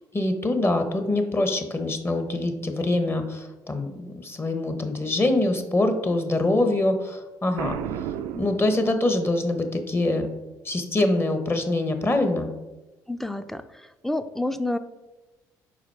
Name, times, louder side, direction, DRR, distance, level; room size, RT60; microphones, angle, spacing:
voice 1, 0.1-8.1 8.3-10.3 10.6-12.5, left 2 dB, 25° left, 7 dB, 1.0 m, -24 dB
Boom, 7.6-9.4, right 9 dB, 80° right, 0.4 m, -33 dB
voice 2, 13.1-14.8, left 1 dB, 5° left, 11 dB, 0.5 m, -29 dB
4.9 x 4.1 x 4.6 m, 1.1 s
hypercardioid pair, 60°, 9 cm